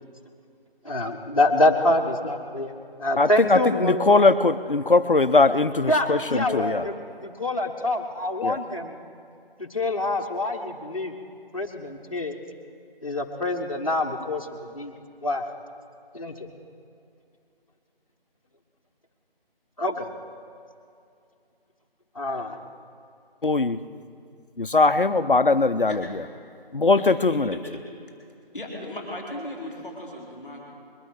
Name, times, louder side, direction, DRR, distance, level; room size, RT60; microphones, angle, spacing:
voice 1, 0.8-2.7 3.0-4.2 5.8-9.0 9.6-11.1 11.5-12.4 13.0-14.9 15.2-15.4 16.1-16.5 19.8-20.1 22.1-22.6, left 1 dB, 35° left, 0 dB, 1.4 m, -26 dB
voice 2, 3.2-6.8 8.4-8.6 23.4-23.8 24.6-26.2 26.7-27.6, left 3 dB, 60° left, 12 dB, 0.7 m, -20 dB
voice 3, 27.0-27.6 28.5-30.6, left 1 dB, 10° left, -14 dB, 2.8 m, -37 dB
21.5 x 9.3 x 6.5 m, 2.5 s
figure-of-eight pair, 175°, 30 cm